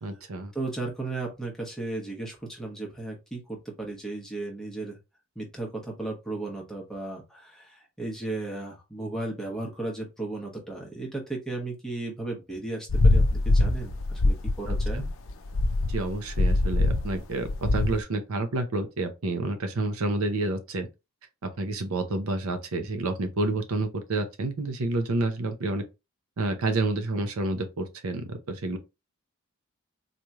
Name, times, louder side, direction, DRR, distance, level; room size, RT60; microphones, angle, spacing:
voice 1, 0.0-0.5 14.7-15.1 15.9-20.9 21.6-25.8 26.4-28.8, right 2 dB, 70° right, 0.6 m, -29 dB
voice 2, 0.5-5.0 5.4-15.1, right 2 dB, ahead, 1.0 m, -35 dB
sound 1, 12.9-18.0, left 2 dB, 60° left, 0.5 m, -23 dB
4.0 x 3.1 x 2.3 m
head